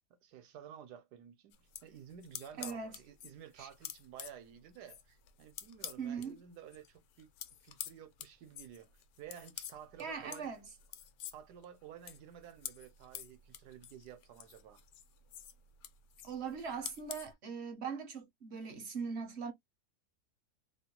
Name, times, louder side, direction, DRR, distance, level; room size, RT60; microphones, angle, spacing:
voice 1, 0.2-7.3 7.6-10.5 11.3-14.8, right 9 dB, 75° right, 1.2 m, -52 dB
sound 1, 1.5-6.3 6.6-17.3, left 10 dB, 70° left, 0.9 m, -48 dB
voice 2, 2.6-3.0 3.6-3.7 6.0-6.4 10.0-10.6 16.2-19.5, right 6 dB, 55° right, 0.8 m, -40 dB
2.9 x 2.1 x 2.8 m
omnidirectional pair, 1.8 m